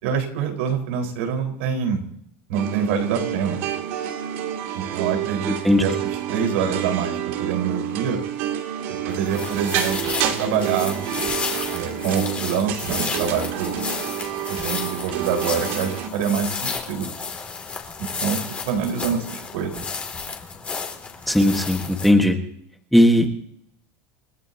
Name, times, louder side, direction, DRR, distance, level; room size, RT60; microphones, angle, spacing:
voice 1, 0.0-2.0 2.5-3.6 4.7-8.2 8.9-11.0 11.7-13.8 14.5-17.1 18.0-19.8, right 7 dB, 90° right, 2 dB, 4.6 m, -26 dB
sound 1, 2.5-16.1, right 10 dB, 70° right, 2.6 m, -28 dB
sound 2, 9.1-22.1, left 5 dB, 20° left, 2.6 m, -32 dB
voice 2, 21.3-22.4 22.9-23.3, left 1 dB, ahead, 3 dB, 1.6 m, -17 dB
29.5 x 15.0 x 2.9 m, 0.72 s
supercardioid pair, 160°, 7 cm